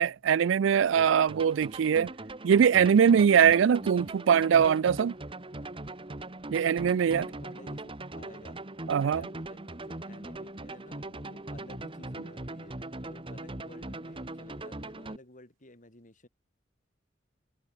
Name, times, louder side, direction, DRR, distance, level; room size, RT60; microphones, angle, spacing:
voice 1, 0.0-2.1 2.4-5.1 6.5-7.3 8.9-9.2, right 7 dB, 75° right, 0.4 m, -22 dB
sound 1, 1.0-15.2, right 2 dB, 30° right, 1.6 m, -40 dB
voice 2, 6.7-8.6 8.9-16.3, left 1 dB, 45° left, 6.4 m, -53 dB
head